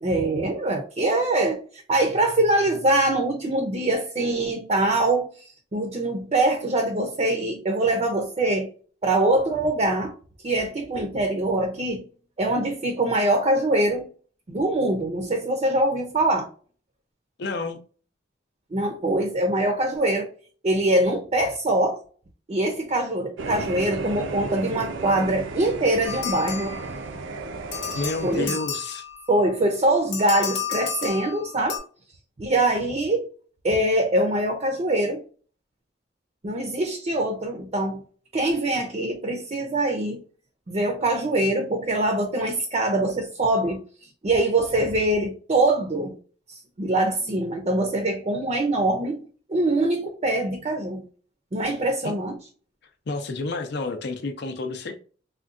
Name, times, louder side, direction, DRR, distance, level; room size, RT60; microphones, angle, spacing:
voice 1, 0.0-5.3 5.7-8.7 9.0-10.1 10.4-12.0 12.4-14.1 14.5-16.5 18.7-20.3 20.6-22.0 22.5-26.8 28.2-28.6 29.3-31.8 32.4-33.3 33.6-35.2 36.4-38.0 38.3-40.2 40.7-43.8 44.2-46.1 46.5-49.2 49.5-51.0 51.5-52.4, right 1 dB, 35° right, 0.5 m, -23 dB
voice 2, 17.4-17.8 27.9-29.0 52.0-52.2 53.1-55.0, left 3 dB, 65° left, 0.5 m, -30 dB
sound 1, 23.4-28.5, right 3 dB, 85° right, 0.5 m, -34 dB
sound 2, 26.1-27.2 27.7-29.4 30.1-31.8, left 7 dB, 80° left, 0.9 m, -32 dB
3.7 x 2.2 x 2.4 m
head